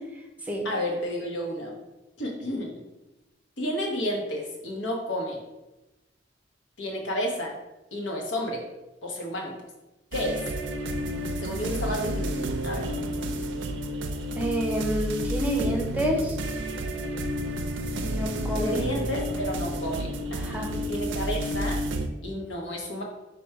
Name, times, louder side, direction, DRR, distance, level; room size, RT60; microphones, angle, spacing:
voice 1, 0.6-1.8 2.2-2.8 3.6-5.4 6.8-7.5 7.9-8.6 9.0-9.5 10.1-10.4 11.4-12.9 18.6-20.6 20.9-21.8 22.2-23.0, left 1 dB, 85° left, 0 dB, 0.9 m, -31 dB
sound 1, 10.1-22.1, right 1 dB, 80° right, 0.4 m, -30 dB
voice 2, 14.4-16.4 18.0-18.9 20.4-20.7, equal, 10° right, 1 dB, 0.5 m, -28 dB
4.3 x 2.3 x 4.5 m, 1.0 s
head